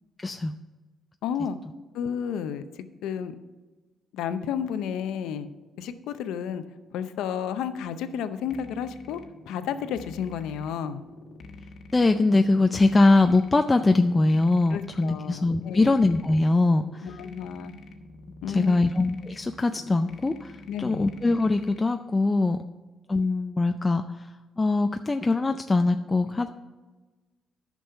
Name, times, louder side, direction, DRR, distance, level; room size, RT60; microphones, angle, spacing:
voice 1, 0.2-0.5 11.9-17.1 18.5-22.6 23.1-24.3 24.6-26.5, left 2 dB, 20° left, 7 dB, 0.4 m, -22 dB
voice 2, 1.2-1.6 1.9-3.3 4.1-5.5 5.8-6.6 6.9-11.0 14.7-15.9 17.0-17.8 18.4-18.9 20.7-21.1, left 8 dB, 90° left, 11 dB, 0.6 m, -32 dB
sound 1, 8.4-21.8, left 2 dB, 60° left, 1.2 m, -47 dB
10.5 x 6.1 x 5.5 m, 1.3 s
cardioid pair, 90°, 0 cm